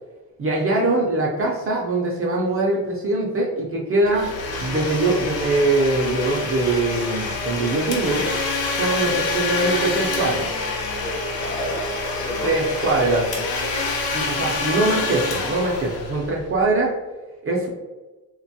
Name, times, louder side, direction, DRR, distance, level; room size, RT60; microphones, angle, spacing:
voice 1, 0.4-4.3 4.6-8.3 8.7-10.5 12.4-13.2 14.1-17.0 17.4-17.7, right 2 dB, 40° right, -2 dB, 0.4 m, -22 dB
Domestic sounds home sounds, 4.1-16.6, left 3 dB, 75° left, 0.6 m, -27 dB
voice 2, 11.0-13.3, left 1 dB, 50° left, -3 dB, 0.9 m, -31 dB
2.8 x 2.2 x 2.7 m, 1.2 s
wide cardioid pair, 180°, 37 cm